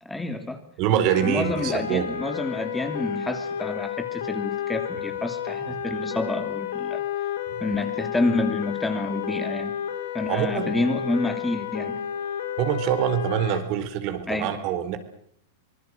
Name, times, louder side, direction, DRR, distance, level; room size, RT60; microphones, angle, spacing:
voice 1, 0.0-0.6 1.2-7.0 7.6-9.8 10.1-12.0 14.3-14.6, left 2 dB, 10° left, 8 dB, 2.8 m, -28 dB
voice 2, 0.8-2.1 10.3-10.7 12.6-15.0, right 10 dB, 50° right, 9 dB, 4.2 m, -25 dB
sound 1, 1.1-13.6, left 9 dB, 80° left, 3.1 m, -31 dB
25.5 x 20.0 x 7.9 m, 0.65 s
hypercardioid pair, 115°, 0 cm